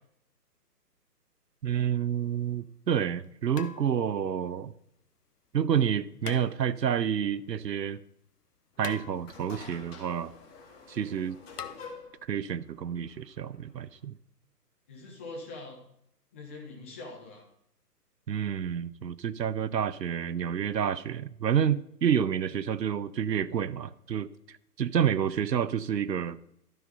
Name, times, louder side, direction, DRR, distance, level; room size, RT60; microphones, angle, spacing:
voice 1, 1.6-4.7 5.5-8.0 8.8-10.3 10.9-11.4 12.3-14.1 18.3-24.3 24.8-26.4, right 8 dB, 90° right, 0.7 m, -29 dB
sound 1, 2.2-2.3 3.5-4.3 6.2-7.0 8.8-9.6 11.6-11.8, left 7 dB, 75° left, 0.8 m, -43 dB
sound 2, 8.7-14.0, left 4 dB, 40° left, 2.2 m, -49 dB
voice 2, 14.9-15.8 16.3-17.4, left 2 dB, 10° left, 0.6 m, -43 dB
12.5 x 5.7 x 4.0 m
figure-of-eight pair, 140°, 48 cm